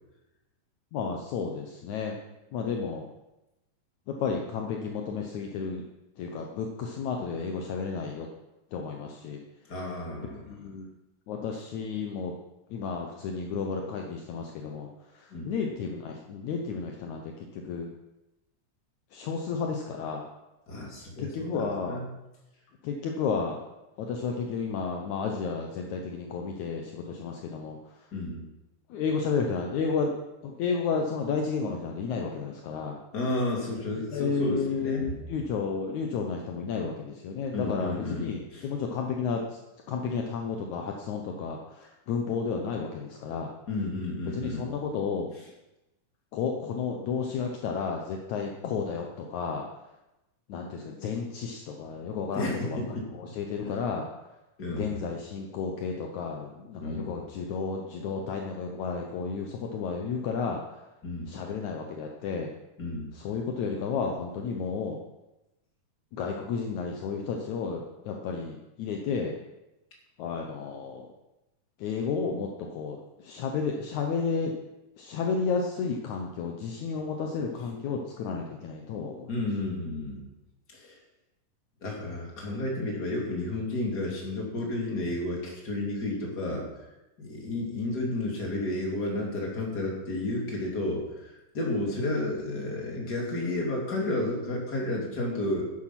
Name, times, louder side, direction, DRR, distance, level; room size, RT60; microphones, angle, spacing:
voice 1, 0.9-2.2 2.5-3.1 4.1-5.8 6.2-8.3 8.7-9.4 10.4-10.9 11.3-12.3 12.7-14.9 15.1-17.9 19.1-20.3 21.2-22.0 22.8-23.6 24.0-27.8 28.9-30.1 30.4-33.0 34.1-39.4 39.9-43.5 44.3-45.3 46.3-49.7 50.5-52.8 53.2-54.1 54.7-60.6 61.3-62.5 63.1-65.0 66.1-69.4 70.2-71.1 71.8-74.5 75.0-79.3, left 5 dB, 70° left, 2 dB, 2.2 m, -32 dB
voice 2, 9.7-10.5 15.3-15.5 20.7-22.1 28.1-28.4 33.1-35.0 37.5-38.7 43.7-44.7 45.4-45.5 52.3-53.1 53.6-53.7 54.6-55.0 56.8-57.1 61.0-61.3 62.8-63.1 79.3-80.2 80.7-81.0 81.8-86.7 87.2-95.7, left 2 dB, 30° left, -1 dB, 3.1 m, -32 dB
11.5 x 10.0 x 5.9 m, 0.98 s
omnidirectional pair, 3.7 m